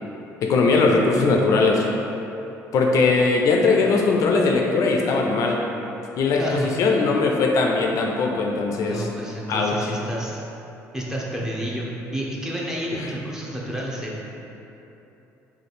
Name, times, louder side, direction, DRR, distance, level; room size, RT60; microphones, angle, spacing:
voice 1, 0.4-1.8 2.7-5.6 6.2-9.1 9.5-9.9 12.9-13.1, left 3 dB, 60° left, 1 dB, 0.4 m, -20 dB
voice 2, 8.9-10.4 10.9-11.9 12.1-14.3, right 1 dB, 10° right, -4 dB, 0.7 m, -30 dB
3.2 x 2.4 x 4.1 m, 3.0 s
cardioid pair, 90°, 6 cm